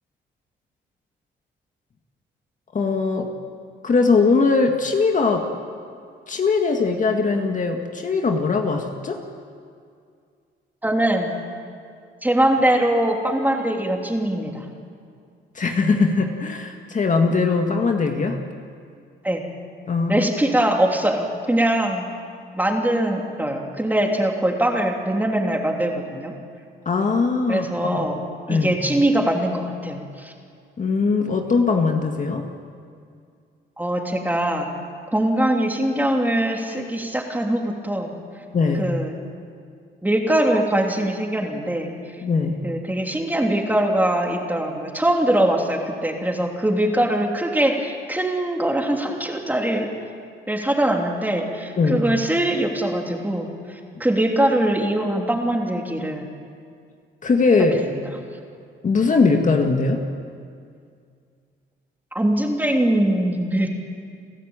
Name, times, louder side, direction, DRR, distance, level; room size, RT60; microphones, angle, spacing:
voice 1, 2.7-3.3 3.8-5.5 6.3-9.2 15.5-18.4 19.9-20.6 26.9-27.9 28.5-28.8 30.8-32.5 38.5-38.9 42.2-42.6 51.8-52.1 57.2-57.8 58.8-60.1, left 4 dB, 40° left, 3 dB, 1.9 m, -20 dB
voice 2, 10.8-11.3 12.2-14.6 19.2-19.4 20.1-22.0 22.5-26.3 27.5-28.2 28.5-30.3 33.8-34.7 35.1-38.1 38.8-39.1 40.0-41.9 42.6-49.9 50.5-53.5 54.0-56.2 62.1-63.7, right 1 dB, 10° right, 1 dB, 3.2 m, -22 dB
29.5 x 13.0 x 8.9 m, 2.3 s
cardioid pair, 90°, 20 cm